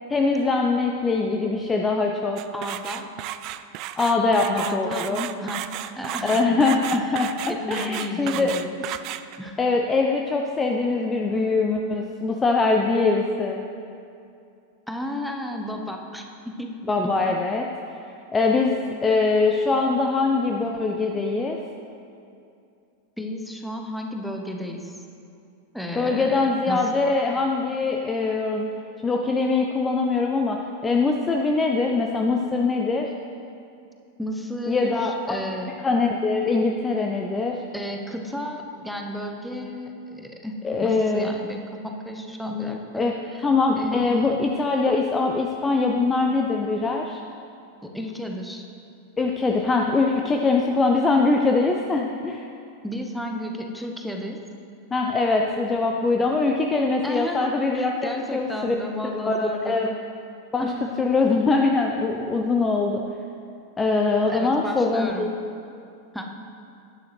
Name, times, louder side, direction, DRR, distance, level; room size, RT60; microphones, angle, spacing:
voice 1, 0.1-2.4 4.0-5.3 6.2-8.6 9.6-13.6 16.9-17.7 18.3-21.6 26.0-28.7 29.0-30.6 30.8-33.1 34.7-35.4 35.8-37.6 40.6-41.4 43.0-43.1 43.4-47.2 49.2-52.4 54.9-58.7 59.0-59.9 60.5-60.7 61.0-63.0 63.8-65.3, left 3 dB, 15° left, 2 dB, 0.6 m, -22 dB
sound 1, 2.4-9.5, right 13 dB, 40° right, 0.3 m, -33 dB
voice 2, 2.5-3.1 4.5-5.1 5.4-5.6 6.0-6.6 6.9-7.1 7.5-8.9 9.4-9.6 14.9-17.2 23.2-25.0 25.7-26.9 34.2-35.7 37.7-40.5 40.8-43.0 43.4-43.5 43.8-44.5 47.8-48.6 52.8-54.4 57.0-60.0 60.6-61.0 64.3-65.3 66.1-66.3, left 1 dB, ahead, 2 dB, 0.9 m, -33 dB
11.0 x 9.4 x 3.3 m, 2.6 s
figure-of-eight pair, 90°, 0 cm